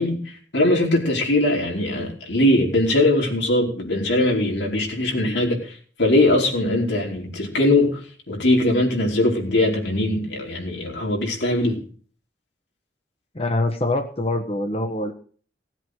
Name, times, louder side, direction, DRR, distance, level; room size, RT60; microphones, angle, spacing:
voice 1, 0.0-8.0 8.3-11.8, left 1 dB, 90° left, 0 dB, 4.7 m, -21 dB
voice 2, 13.3-15.1, left 2 dB, 35° left, 5 dB, 1.4 m, -24 dB
17.5 x 7.9 x 6.4 m, 0.44 s
head